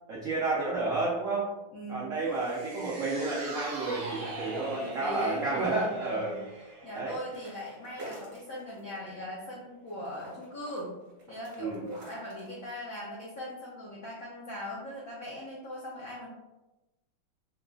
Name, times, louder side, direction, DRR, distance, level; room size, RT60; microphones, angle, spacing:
voice 1, 0.1-1.5 1.9-6.4 6.9-7.2 11.6-11.9, right 3 dB, 90° right, -6 dB, 0.7 m, -31 dB
voice 2, 1.7-2.1 4.7-6.4 6.8-11.0 11.3-16.3, left 1 dB, 80° left, -5 dB, 0.7 m, -40 dB
sound 1, 2.3-8.7 9.1-9.2, right 2 dB, 65° right, 1.5 m, -43 dB
sound 2, 7.3-9.1 9.4-12.6, right 1 dB, 45° right, 1.3 m, -48 dB
4.7 x 2.4 x 2.3 m, 1.0 s
omnidirectional pair, 2.3 m